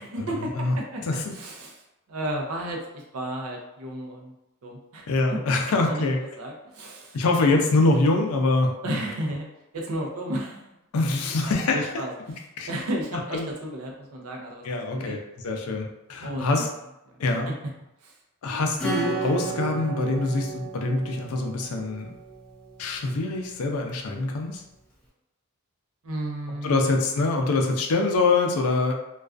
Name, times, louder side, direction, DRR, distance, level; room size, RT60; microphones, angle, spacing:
voice 1, 0.0-1.0 1.3-4.3 4.6-5.4 5.8-7.2 8.8-9.5 9.7-10.8 11.4-12.1 12.7-14.6 14.9-15.2 16.2-16.7 17.1-17.5 18.0-18.2 26.0-26.8, right 1 dB, 75° right, 0 dB, 0.5 m, -33 dB
voice 2, 5.1-6.2 7.1-9.0 10.9-11.8 12.6-12.7 13.3-13.5 14.6-15.2 15.4-16.7 17.2-17.5 18.4-22.1 22.8-24.6 26.6-28.9, left 3 dB, 80° left, 2 dB, 0.4 m, -24 dB
Acoustic guitar / Strum, 18.8-23.1, right 4 dB, 5° left, 0.5 m, -33 dB
2.3 x 2.3 x 2.4 m, 0.90 s
head